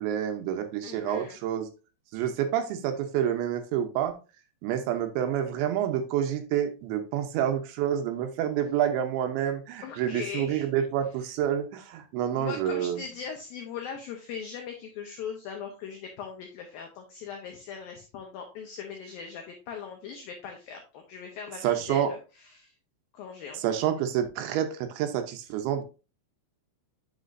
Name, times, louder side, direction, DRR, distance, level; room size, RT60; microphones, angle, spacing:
voice 1, 0.0-1.7 2.1-4.2 4.6-13.0 21.6-22.1 23.6-25.8, right 10 dB, 75° right, 7 dB, 3.0 m, -28 dB
voice 2, 0.8-1.4 9.8-10.7 12.3-22.2 22.5-22.7 23.1-23.6, left 6 dB, 80° left, 3 dB, 2.1 m, -40 dB
9.3 x 6.0 x 2.6 m, 0.31 s
omnidirectional pair, 5.6 m